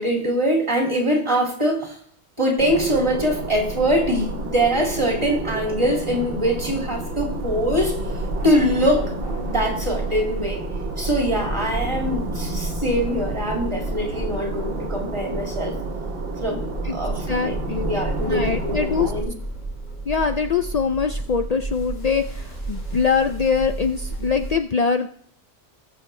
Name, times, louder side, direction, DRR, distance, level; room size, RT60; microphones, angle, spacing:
voice 1, 0.0-2.0 2.4-8.0 8.4-9.1 9.5-10.6 11.0-15.7 16.4-17.6 17.9-19.3, equal, 20° right, 0 dB, 2.4 m, -23 dB
sound 1, 2.6-19.2, right 1 dB, 50° right, 1.3 m, -31 dB
sound 2, 7.1-24.5, right 2 dB, 40° left, 5.2 m, -32 dB
voice 2, 17.3-17.9 18.3-19.1 20.1-25.1, left 5 dB, 70° left, 7 dB, 0.3 m, -23 dB
19.0 x 6.7 x 3.2 m, 0.64 s
omnidirectional pair, 1.3 m